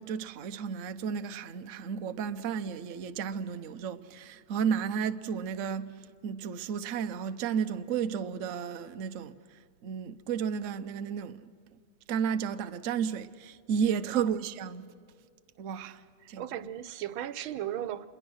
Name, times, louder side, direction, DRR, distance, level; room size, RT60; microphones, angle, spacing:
voice 1, 0.0-11.5 12.1-14.9 15.6-16.5, right 7 dB, 55° right, 0.9 m, -33 dB
voice 2, 14.1-14.5 16.4-18.1, right 11 dB, 85° right, 1.6 m, -36 dB
27.0 x 22.0 x 6.3 m
omnidirectional pair, 2.2 m